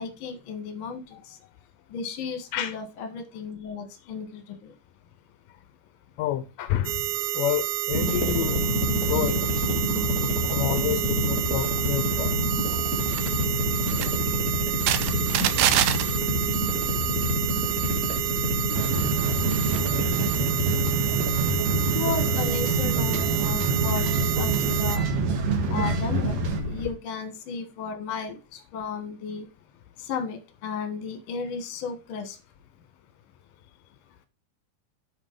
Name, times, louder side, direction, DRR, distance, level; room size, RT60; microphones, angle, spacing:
voice 1, 0.0-1.4 1.9-4.7 21.8-25.1 25.7-26.4 26.7-29.5 30.0-32.4, left 6 dB, 55° left, 1.6 m, -34 dB
voice 2, 6.2-7.1 7.3-8.7 9.0-9.7 10.5-12.6, left 13 dB, 80° left, 2.1 m, -30 dB
sound 1, 6.9-25.0, right 13 dB, 90° right, 2.5 m, -28 dB
sound 2, 7.9-26.9, left 2 dB, 25° right, 3.2 m, -29 dB
sound 3, 18.7-26.6, right 5 dB, 60° right, 2.3 m, -27 dB
8.5 x 5.3 x 5.1 m
omnidirectional pair, 4.1 m